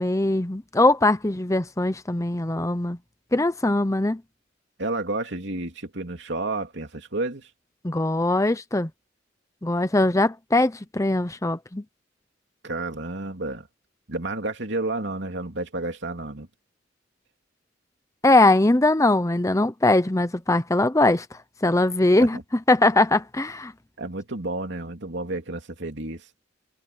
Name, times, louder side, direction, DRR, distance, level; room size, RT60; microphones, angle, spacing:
voice 1, 0.0-3.0 3.3-4.2 7.8-8.9 9.6-11.8 18.2-21.3 21.6-22.4 22.7-23.7, left 2 dB, 15° left, 0.8 m, -21 dB
voice 2, 4.8-7.5 12.6-13.7 14.1-16.5 22.2-22.4 24.0-26.2, right 2 dB, 65° right, 3.2 m, -31 dB
head